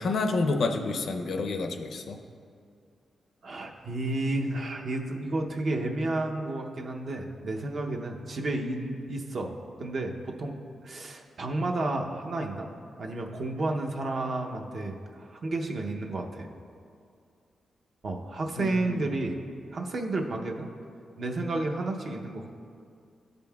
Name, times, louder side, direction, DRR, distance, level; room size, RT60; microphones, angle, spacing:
voice 1, 0.0-2.2 18.6-19.1, left 3 dB, 70° left, 5 dB, 0.5 m, -29 dB
voice 2, 3.4-12.7 13.0-16.5 18.0-19.4 19.7-20.7 21.2-22.5, right 2 dB, 55° right, 2 dB, 0.6 m, -31 dB
12.0 x 5.3 x 2.3 m, 2.4 s
wide cardioid pair, 115°, 0 cm